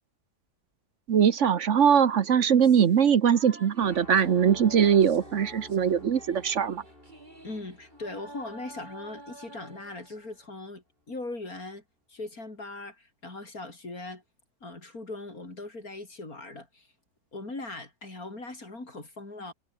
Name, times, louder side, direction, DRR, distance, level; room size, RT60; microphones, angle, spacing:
voice 1, 1.1-6.8, right 8 dB, 60° right, 1.2 m, -21 dB
sound 1, 1.8-10.5, right 1 dB, 30° right, 4.8 m, -50 dB
sound 2, 3.8-9.7, left 1 dB, 40° left, 6.7 m, -50 dB
voice 2, 7.4-11.8 12.1-14.2 14.6-16.9 17.3-19.5, left 2 dB, 75° left, 5.8 m, -40 dB
omnidirectional pair, 1.5 m